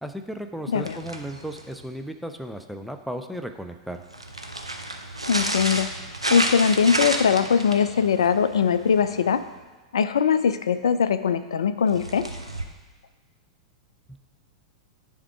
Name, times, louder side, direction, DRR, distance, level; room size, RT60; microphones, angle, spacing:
voice 1, 0.0-4.0, right 1 dB, ahead, 6 dB, 0.5 m, -35 dB
voice 2, 0.7-1.0 5.3-5.9 6.3-9.4 9.9-12.3, left 6 dB, 65° left, 13 dB, 0.3 m, -21 dB
sound 1, 0.7-1.9 4.0-9.6 11.9-12.6, right 1 dB, 90° right, 0.6 m, -31 dB
9.8 x 3.6 x 4.7 m, 1.3 s
figure-of-eight pair, 95°, 3 cm